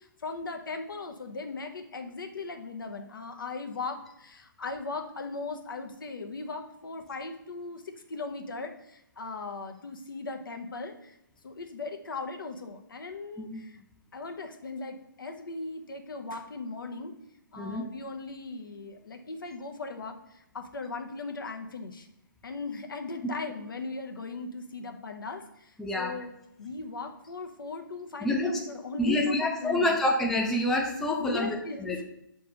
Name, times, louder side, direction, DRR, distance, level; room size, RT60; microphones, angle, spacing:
voice 1, 0.0-11.2 11.4-13.8 14.1-17.1 17.5-22.1 22.4-26.3 26.6-30.0 31.2-32.1, left 3 dB, 70° left, 5 dB, 1.0 m, -38 dB
voice 2, 25.8-26.1 28.2-28.5 29.0-32.0, left 1 dB, ahead, -1 dB, 0.4 m, -27 dB
6.8 x 3.4 x 5.1 m, 0.80 s
figure-of-eight pair, 145°, 12 cm